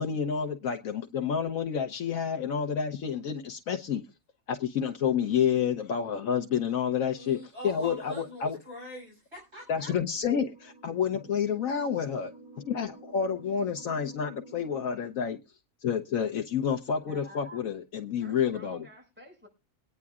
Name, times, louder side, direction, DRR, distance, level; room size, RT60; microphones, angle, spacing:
voice 1, 0.0-4.0 4.5-8.6 9.7-12.3 12.6-15.4 15.8-18.8, left 7 dB, 75° left, 4 dB, 1.3 m, -29 dB
voice 2, 7.1-10.0, equal, 50° right, -3 dB, 6.9 m, -43 dB
sound 1, 9.6-14.9, right 3 dB, 90° right, 3.3 m, -51 dB
voice 3, 17.1-17.7 18.2-19.5, left 1 dB, 5° right, 0 dB, 5.5 m, -49 dB
23.0 x 9.6 x 2.4 m, 0.27 s
omnidirectional pair, 1.4 m